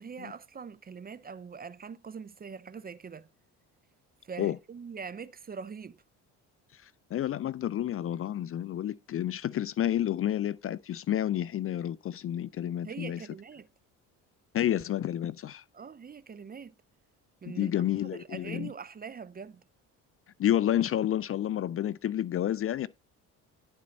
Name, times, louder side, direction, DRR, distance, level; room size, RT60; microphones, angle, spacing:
voice 1, 0.0-3.3 4.2-6.0 12.8-13.7 15.7-16.7 17.4-17.7 18.1-19.6, right 6 dB, 25° right, 0.6 m, -43 dB
voice 2, 6.8-13.2 14.5-15.6 17.5-18.7 20.4-22.9, left 11 dB, 40° left, 0.4 m, -30 dB
11.0 x 4.4 x 5.3 m
supercardioid pair, 75°, 35 cm